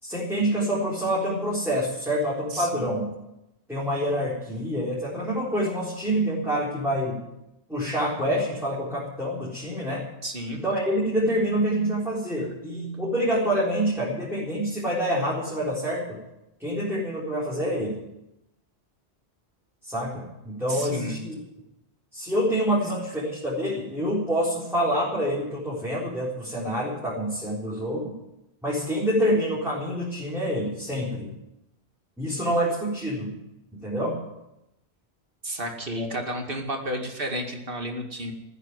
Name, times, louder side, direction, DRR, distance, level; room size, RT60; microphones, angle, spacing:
voice 1, 0.0-3.1 3.7-7.2 7.7-10.0 10.5-16.2 16.6-18.0 19.9-21.4 22.1-28.1 28.6-31.3 32.2-33.3 33.8-34.2 36.0-36.1, equal, ahead, -7 dB, 4.1 m, -27 dB
voice 2, 2.5-2.9 10.2-10.6 20.7-21.2 35.4-38.3, right 1 dB, 55° right, 3 dB, 2.5 m, -32 dB
14.5 x 9.5 x 9.7 m, 0.90 s
omnidirectional pair, 1.1 m